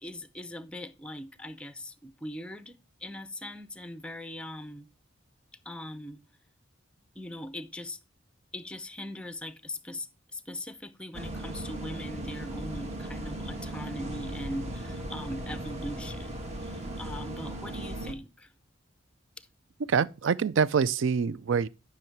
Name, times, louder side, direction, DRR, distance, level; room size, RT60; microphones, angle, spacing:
voice 1, 0.0-2.8 3.0-4.9 5.7-6.2 7.2-8.0 8.5-18.5, left 1 dB, 5° left, 0.6 m, -40 dB
sound 1, 11.1-18.1, right 1 dB, 35° right, 1.4 m, -37 dB
voice 2, 19.9-21.7, right 6 dB, 70° right, 0.4 m, -25 dB
10.5 x 5.8 x 4.6 m
head